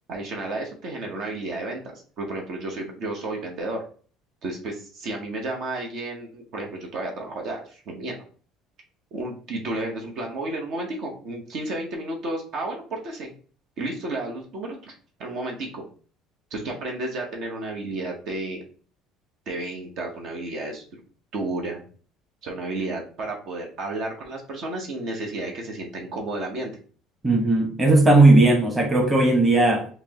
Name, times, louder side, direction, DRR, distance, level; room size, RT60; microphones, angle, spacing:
voice 1, 0.1-3.8 4.4-8.2 9.1-13.3 13.8-14.9 15.2-15.8 16.5-18.6 19.5-20.9 21.3-21.8 22.4-26.7, right 2 dB, 60° right, 1.0 m, -32 dB
voice 2, 27.2-29.9, right 2 dB, 20° right, 1.1 m, -17 dB
5.8 x 2.1 x 2.8 m
supercardioid pair, 100°, 0 cm